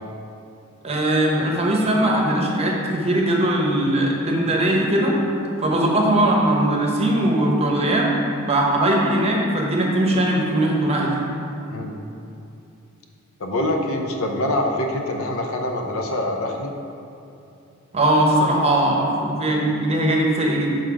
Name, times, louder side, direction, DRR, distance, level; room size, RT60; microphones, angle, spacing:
voice 1, 0.8-5.2 5.6-8.1 8.5-11.2 17.9-20.8, right 1 dB, 30° right, -1 dB, 0.8 m, -20 dB
voice 2, 13.4-16.7, left 1 dB, 70° left, 2 dB, 0.6 m, -25 dB
6.3 x 4.0 x 4.7 m, 2.7 s
head